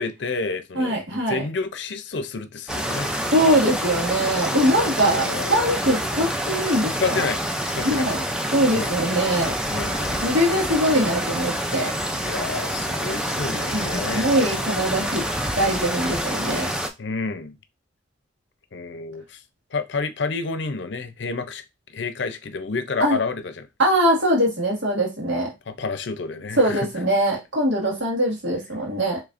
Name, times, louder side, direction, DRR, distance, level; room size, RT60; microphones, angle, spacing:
voice 1, 0.0-3.3 5.0-5.6 7.0-7.4 7.7-8.1 8.7-9.0 9.7-10.3 12.1-14.3 17.0-17.6 18.7-19.4 19.7-21.6 21.9-23.7 25.7-26.9, left 4 dB, 60° left, 0.6 m, -29 dB
voice 2, 0.8-1.4 3.3-7.2 7.8-8.2 8.5-9.5 10.2-11.9 13.7-15.2 15.6-16.7 23.0-23.2 23.8-25.5 26.6-29.2, right 1 dB, 70° right, 2.0 m, -22 dB
sound 1, 2.7-16.9, equal, 5° right, 0.4 m, -27 dB
4.8 x 3.2 x 2.5 m
head